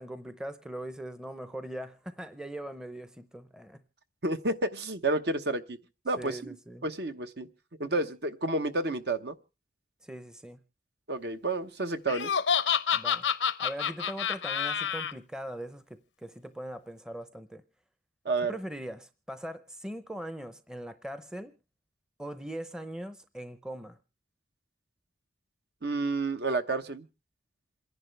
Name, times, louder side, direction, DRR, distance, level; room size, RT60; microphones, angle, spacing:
voice 1, 0.0-3.8 6.2-6.9 10.0-10.6 12.9-13.3 13.6-17.6 18.5-21.5 22.2-24.0, right 1 dB, 5° right, 11 dB, 0.7 m, -41 dB
voice 2, 4.2-5.8 6.0-6.6 6.8-7.5 7.8-9.3 11.1-12.3 18.2-18.6 25.8-27.0, right 2 dB, 60° right, 9 dB, 1.0 m, -30 dB
Laughter, 12.1-15.1, left 7 dB, 80° left, 0.7 m, -28 dB
27.5 x 11.0 x 3.3 m, 0.32 s
head